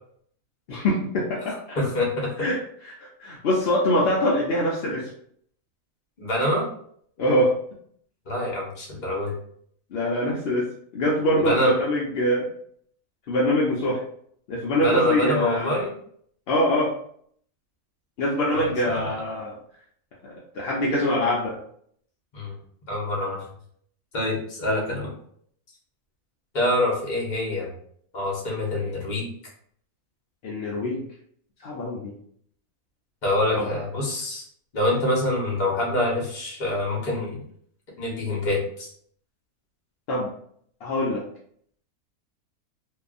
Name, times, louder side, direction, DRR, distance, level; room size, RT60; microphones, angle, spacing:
voice 1, 0.7-1.8 2.4-5.1 7.2-7.6 9.9-12.5 13.3-14.0 14.5-15.8 16.5-17.0 18.2-19.6 20.2-21.6 30.4-31.0 31.6-32.1 33.5-33.7 40.1-40.3 40.8-41.2, left 1 dB, 65° left, -4 dB, 0.6 m, -24 dB
voice 2, 1.8-2.3 6.2-6.7 8.3-9.4 11.4-11.7 14.8-15.9 18.5-19.1 22.3-22.5 22.9-23.4 24.1-25.1 26.5-27.7 28.1-29.3 33.2-34.4 34.7-37.4 38.0-38.9, left 1 dB, 40° left, -3 dB, 0.8 m, -25 dB
2.7 x 2.3 x 2.4 m, 0.64 s
omnidirectional pair, 1.5 m